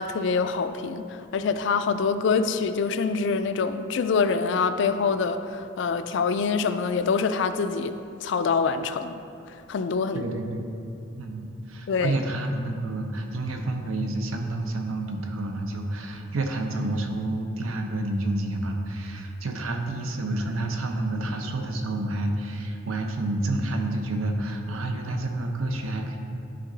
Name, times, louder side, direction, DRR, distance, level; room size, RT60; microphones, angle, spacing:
voice 1, 0.0-9.2 9.7-10.3 11.9-12.2, left 5 dB, 60° left, 10 dB, 0.3 m, -25 dB
voice 2, 10.1-10.6 11.2-26.2, right 2 dB, 90° right, 4 dB, 0.7 m, -29 dB
9.2 x 3.7 x 3.9 m, 2.7 s
head